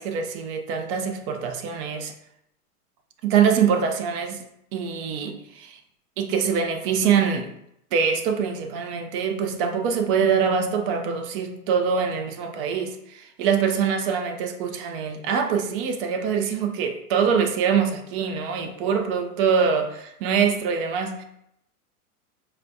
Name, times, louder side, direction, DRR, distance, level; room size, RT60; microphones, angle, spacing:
voice 1, 0.0-2.1 3.2-5.8 6.2-7.5 7.9-21.2, right 6 dB, 40° right, 0.5 m, -24 dB
4.9 x 2.2 x 2.6 m
hypercardioid pair, 120°, 45 cm